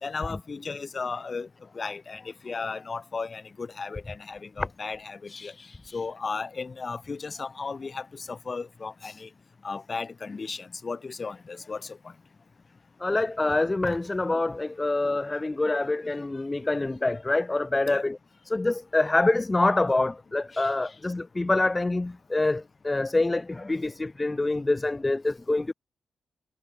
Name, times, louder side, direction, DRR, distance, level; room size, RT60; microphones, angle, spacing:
voice 1, 0.0-1.5 1.7-9.3 9.6-12.1 17.9-18.0 20.5-20.9, left 4 dB, 35° left, 4.7 m, -35 dB
voice 2, 13.0-18.2 18.5-25.7, left 2 dB, 20° left, 0.9 m, -26 dB
cardioid pair, 110°, 0 cm